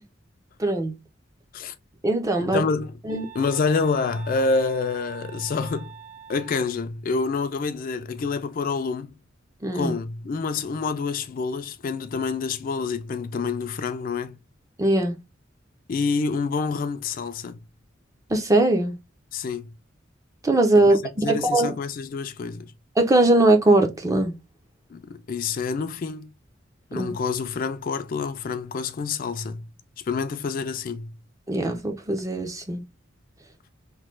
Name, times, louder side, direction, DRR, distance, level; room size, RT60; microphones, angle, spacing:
voice 1, 0.6-1.0 2.0-2.6 3.1-3.3 9.6-9.9 14.8-15.2 18.3-19.0 20.4-21.7 23.0-24.3 26.9-27.1 31.5-32.8, right 2 dB, 15° right, 0.5 m, -20 dB
voice 2, 2.4-3.0 3.3-5.9 6.3-9.2 9.7-14.4 15.9-17.6 19.3-19.7 20.9-22.7 24.9-26.3 26.9-29.7 30.0-31.1, left 4 dB, 45° left, 0.3 m, -27 dB
sound 1, 3.1-6.7, right 5 dB, 35° right, 1.4 m, -44 dB
3.0 x 2.2 x 3.1 m
head